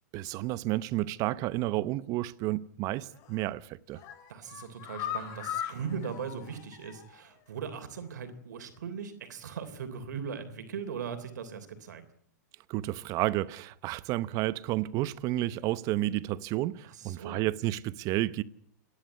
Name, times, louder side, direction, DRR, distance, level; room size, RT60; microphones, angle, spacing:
voice 1, 0.1-4.0 12.7-18.4, right 16 dB, 40° right, 0.9 m, -31 dB
sound 1, 3.1-3.5 3.9-7.3 7.6-7.7 8.1-8.2, left 10 dB, 40° left, 4.2 m, -40 dB
voice 2, 4.3-12.0 16.9-17.4, right 6 dB, 80° right, 3.3 m, -39 dB
28.0 x 11.5 x 9.5 m
hypercardioid pair, 135°, 10 cm